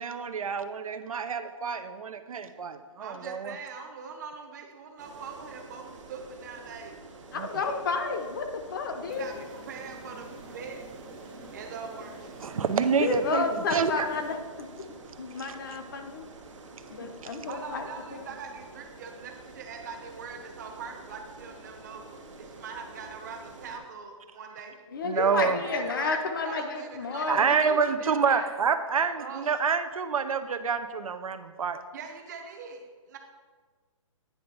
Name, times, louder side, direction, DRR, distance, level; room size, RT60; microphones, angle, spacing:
voice 1, 0.0-3.5 7.3-7.5 12.4-13.4 13.7-14.1 15.5-15.6 25.0-25.6 27.3-31.8, right 6 dB, 85° right, 10 dB, 0.6 m, -27 dB
voice 2, 3.0-7.0 7.5-7.8 9.0-10.8 11.5-12.6 17.5-22.0 22.4-24.8 25.1-28.5 29.0-29.5 31.9-33.2, right 5 dB, 35° right, 3 dB, 0.9 m, -42 dB
sound 1, 5.0-23.8, right 3 dB, 60° right, 1.2 m, -48 dB
voice 3, 7.3-9.2 13.0-14.9 15.2-16.3 16.9-17.8 18.1-18.3 24.9-27.8, left 4 dB, 40° left, 6 dB, 0.7 m, -31 dB
sound 2, 9.1-14.4, right 2 dB, 10° right, 0.4 m, -48 dB
9.3 x 3.4 x 5.4 m, 1.4 s
hypercardioid pair, 165°, 17 cm